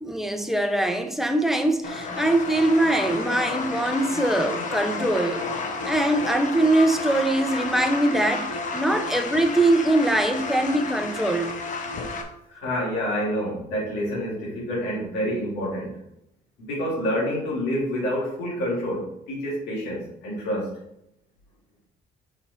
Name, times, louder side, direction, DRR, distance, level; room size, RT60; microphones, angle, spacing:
voice 1, 0.0-5.4 5.8-11.5, right 1 dB, ahead, 0.7 m, -22 dB
sound 1, 1.8-12.2, left 3 dB, 50° left, 1.0 m, -31 dB
voice 2, 12.5-16.0 16.6-20.7, equal, 90° left, 2.4 m, -28 dB
6.1 x 4.1 x 4.2 m
cardioid pair, 110°, 17 cm